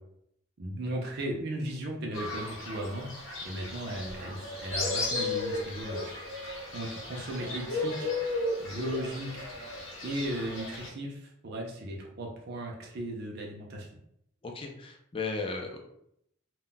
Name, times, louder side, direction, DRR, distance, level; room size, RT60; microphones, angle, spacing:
voice 1, 0.6-3.1 3.4-9.5 10.0-13.9, right 1 dB, 50° right, -1 dB, 0.5 m, -36 dB
Fowl, 2.1-10.9, left 2 dB, 70° left, 0.7 m, -35 dB
voice 2, 14.4-15.8, left 3 dB, 25° left, 3 dB, 0.3 m, -35 dB
2.2 x 2.1 x 3.8 m, 0.74 s
head